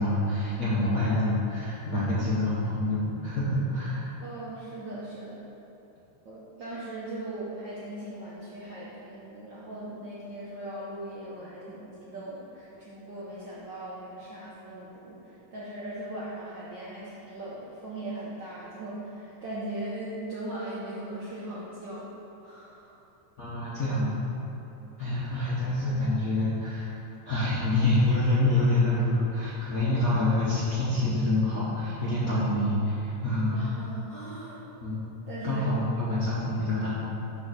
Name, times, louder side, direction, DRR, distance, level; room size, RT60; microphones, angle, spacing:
voice 1, 0.0-4.1 23.4-24.2 25.0-27.0 27.2-33.6 34.8-35.0 35.4-37.1, left 1 dB, 80° left, -9 dB, 0.8 m, -26 dB
voice 2, 4.2-5.4 6.2-22.1 22.4-23.0 33.5-34.6 35.3-35.8 36.3-36.4, right 1 dB, 65° right, -8 dB, 1.1 m, -39 dB
6.6 x 4.6 x 6.1 m, 3.0 s
omnidirectional pair, 3.3 m